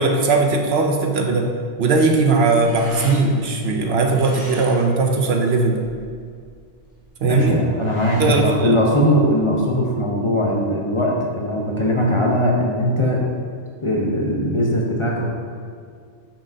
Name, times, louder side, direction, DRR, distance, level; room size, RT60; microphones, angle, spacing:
voice 1, 0.0-1.5 1.8-5.9 7.2-7.6 8.2-8.8, right 3 dB, 70° right, 3 dB, 0.9 m, -19 dB
sound 1, 1.8-9.7, equal, 15° right, 1.7 m, -41 dB
voice 2, 7.2-13.2 13.8-15.2, equal, 30° left, -2 dB, 0.9 m, -20 dB
8.4 x 6.0 x 2.7 m, 2.1 s
omnidirectional pair, 1.2 m